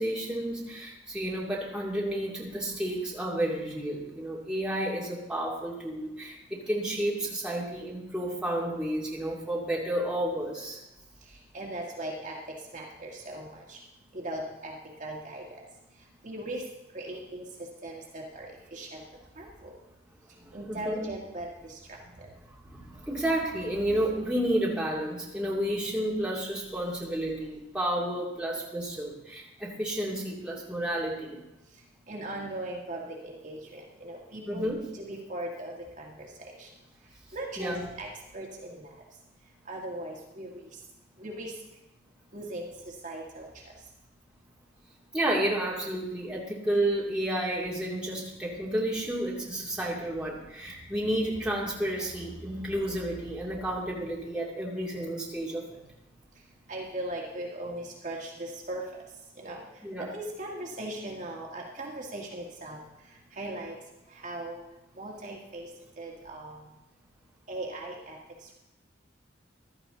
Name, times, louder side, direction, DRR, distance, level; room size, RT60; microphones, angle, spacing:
voice 1, 0.0-10.8 20.4-21.0 22.6-31.4 34.5-34.8 37.6-37.8 45.1-55.8 59.8-60.0, right 1 dB, 5° right, -5 dB, 2.7 m, -31 dB
voice 2, 11.5-12.4 12.7-13.8 14.1-14.7 15.0-15.6 16.2-16.6 16.9-17.4 17.8-19.0 19.4-19.7 20.5-21.8 22.2-22.3 32.1-36.7 37.3-38.9 39.7-40.6 41.2-41.5 42.3-42.7 43.0-43.5 56.7-58.8 59.4-59.6 60.0-62.8 63.3-63.7 64.2-64.6 65.0-65.7 66.0-66.6 67.5-68.2, right 1 dB, 45° right, -2 dB, 1.9 m, -38 dB
15.5 x 12.5 x 3.9 m, 0.96 s
head